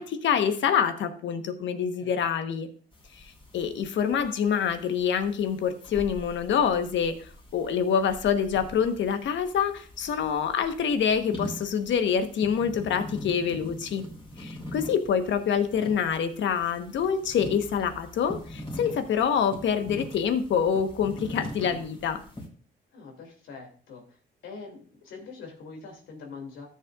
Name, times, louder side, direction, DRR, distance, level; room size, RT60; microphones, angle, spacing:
voice 1, 0.0-2.7 3.1-3.2 3.5-7.1 7.5-14.0 14.4-22.2, left 7 dB, 70° left, 8 dB, 1.1 m, -26 dB
sound 1, 2.9-22.5, equal, 25° left, 3.5 m, -43 dB
voice 2, 22.9-24.2 24.4-26.7, left 4 dB, 85° left, 2 dB, 2.5 m, -44 dB
13.5 x 7.5 x 2.4 m, 0.43 s
cardioid pair, 90°, 20 cm